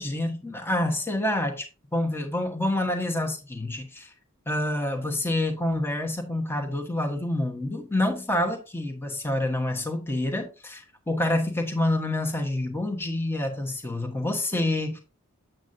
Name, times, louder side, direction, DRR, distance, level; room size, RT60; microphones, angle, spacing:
voice 1, 0.0-1.7 1.9-4.1 4.5-15.0, left 1 dB, 10° left, 1.1 m, -27 dB
8.1 x 7.6 x 2.6 m
head